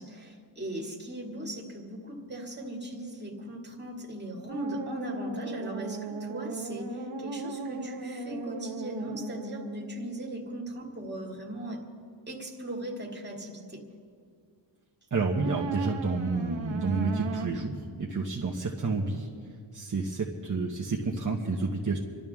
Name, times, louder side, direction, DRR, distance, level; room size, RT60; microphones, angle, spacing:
voice 1, 0.0-11.8 12.3-13.8, right 1 dB, 20° right, -1 dB, 2.2 m, -38 dB
sound 1, 4.5-9.9 15.2-17.5, right 3 dB, 90° right, 1.4 m, -37 dB
voice 2, 15.1-17.7 18.0-19.3 19.7-22.0, right 3 dB, 40° right, 0 dB, 1.1 m, -29 dB
28.0 x 12.5 x 3.6 m, 2.2 s
wide cardioid pair, 140°, 47 cm